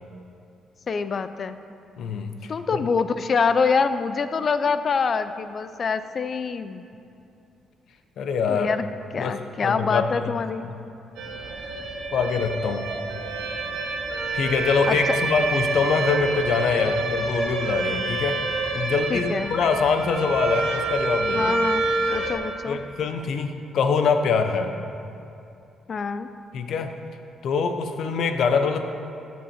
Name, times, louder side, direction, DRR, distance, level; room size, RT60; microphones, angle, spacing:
voice 1, 0.9-1.6 2.5-6.9 8.5-8.9 9.1-10.7 14.9-15.2 19.1-19.5 21.3-21.8 22.1-22.8 25.9-26.3, left 5 dB, 45° left, 11 dB, 0.5 m, -25 dB
voice 2, 2.0-2.8 8.2-8.7 9.2-9.3 9.6-10.3 12.1-12.8 14.3-18.4 18.7-21.5 22.7-24.7 26.5-26.9 27.4-28.8, left 5 dB, 70° left, 7 dB, 0.8 m, -24 dB
sound 1, 11.2-22.3, right 3 dB, 90° right, 1.3 m, -27 dB
13.0 x 7.4 x 4.4 m, 2.7 s
cardioid pair, 90°, 0 cm